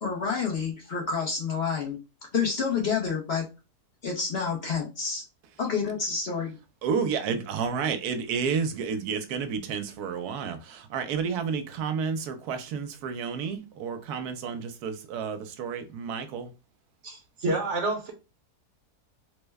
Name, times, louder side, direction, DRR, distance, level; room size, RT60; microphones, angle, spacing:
voice 1, 0.0-2.0 2.3-3.4 4.0-5.2 5.6-6.6, left 5 dB, 50° left, 0.9 m, -28 dB
voice 2, 6.8-16.5, right 6 dB, 80° right, 1.1 m, -31 dB
voice 3, 17.0-18.1, right 2 dB, 55° right, 1.0 m, -28 dB
3.2 x 2.1 x 3.3 m
omnidirectional pair, 1.6 m